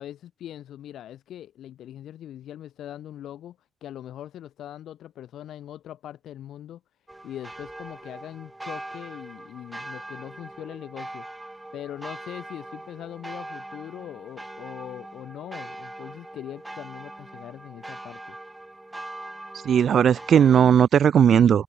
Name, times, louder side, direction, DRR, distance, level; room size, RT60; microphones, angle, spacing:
voice 1, 0.0-6.8 7.2-11.4 11.7-18.4, left 11 dB, 75° left, 3.4 m, -41 dB
sound 1, 7.1-20.6, right 1 dB, 10° right, 0.8 m, -41 dB
voice 2, 19.6-21.6, right 8 dB, 50° right, 0.3 m, -17 dB
wide cardioid pair, 175°, 0 cm